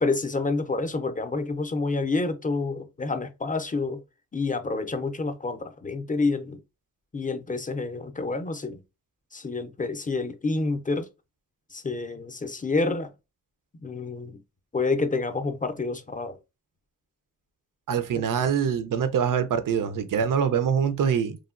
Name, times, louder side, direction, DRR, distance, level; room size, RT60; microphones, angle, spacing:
voice 1, 0.0-4.0 4.3-6.6 7.1-8.8 9.3-11.1 11.7-13.1 13.8-14.4 14.7-16.4, left 3 dB, 25° left, 0.4 m, -28 dB
voice 2, 17.9-21.4, right 7 dB, 90° right, 0.5 m, -24 dB
3.1 x 2.1 x 2.4 m
wide cardioid pair, 70°, 31 cm